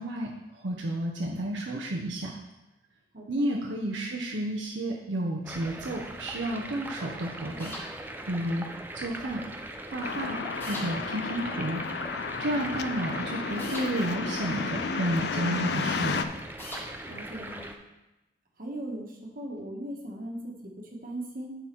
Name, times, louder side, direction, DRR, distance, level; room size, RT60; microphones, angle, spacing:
voice 1, 0.0-2.4 3.3-7.7 8.3-9.4 9.9-10.4 10.7-11.8 12.4-16.2, right 1 dB, 75° right, -1 dB, 0.8 m, -31 dB
voice 2, 3.1-3.5 17.1-17.7 18.6-21.6, right 1 dB, 45° right, 0 dB, 1.3 m, -38 dB
Water Through Drain (No Reverb), 5.4-17.8, right 1 dB, 10° right, 0.4 m, -40 dB
sound 1, 7.6-7.9 10.6-10.9 13.6-13.9 16.6-16.9, left 1 dB, 10° left, 1.0 m, -38 dB
sound 2, 10.0-16.2, left 5 dB, 55° left, 0.4 m, -33 dB
10.0 x 4.0 x 4.5 m, 1.0 s
head